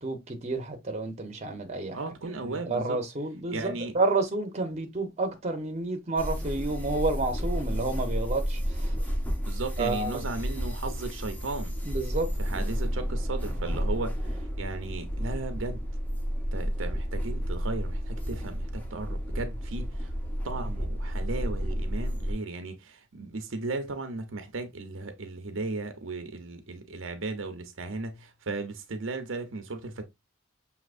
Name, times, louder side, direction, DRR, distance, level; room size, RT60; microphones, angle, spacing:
voice 1, 0.0-2.0 2.4-8.9 9.8-10.2 11.8-12.3, right 3 dB, 35° right, 0.8 m, -30 dB
voice 2, 1.9-3.0 3.5-3.9 9.5-11.7 12.4-15.8 16.5-20.1 20.4-30.0, right 3 dB, 75° right, 0.7 m, -36 dB
sound 1, 6.2-22.3, equal, 10° left, 0.8 m, -31 dB
6.3 x 2.8 x 2.5 m
head